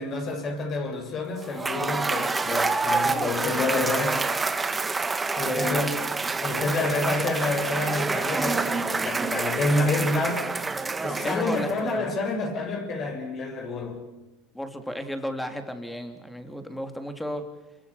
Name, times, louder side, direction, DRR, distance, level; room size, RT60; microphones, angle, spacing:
voice 1, 0.0-4.2 5.4-6.0 6.4-10.5 11.0-14.0, left 2 dB, 40° left, 3 dB, 6.9 m, -28 dB
Cheering / Applause / Crowd, 1.4-11.9, right 3 dB, 15° right, 1.6 m, -27 dB
voice 2, 3.1-4.4 5.4-5.9 6.8-7.3 11.2-12.1 14.5-17.4, equal, 5° left, 7 dB, 3.3 m, -34 dB
27.0 x 23.0 x 7.2 m, 1.0 s
supercardioid pair, 105°, 0 cm